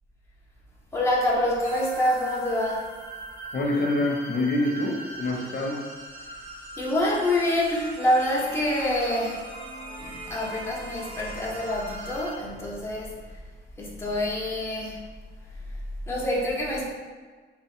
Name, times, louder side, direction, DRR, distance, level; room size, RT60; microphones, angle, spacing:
voice 1, 0.9-2.9 6.8-9.4 10.0-13.2 13.8-15.0 16.1-16.8, left 1 dB, 10° left, -5 dB, 1.1 m, -26 dB
sound 1, 1.6-12.3, right 1 dB, 75° right, 1.4 m, -41 dB
voice 2, 3.5-5.8, left 2 dB, 55° left, -3 dB, 0.9 m, -26 dB
sound 2, 5.2-6.8 7.3-7.4 7.8-12.3, right 2 dB, 35° right, 1.1 m, -46 dB
3.7 x 2.3 x 4.4 m, 1.5 s
cardioid pair, 90°, 20 cm